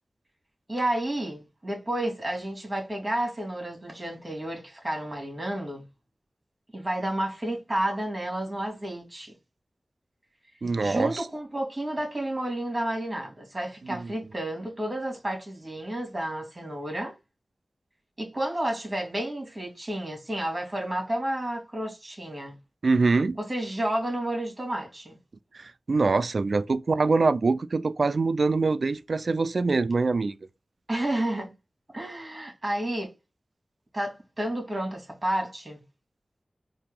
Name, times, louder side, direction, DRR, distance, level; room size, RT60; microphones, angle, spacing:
voice 1, 0.7-5.9 6.7-9.3 10.8-17.1 18.2-22.6 23.4-25.2 30.9-31.5 31.9-33.1 33.9-35.8, right 1 dB, 35° right, 2.2 m, -31 dB
voice 2, 10.6-11.2 13.9-14.1 22.8-23.4 25.6-30.3, right 3 dB, 75° right, 0.3 m, -24 dB
4.3 x 2.9 x 3.7 m
cardioid pair, 45°, 0 cm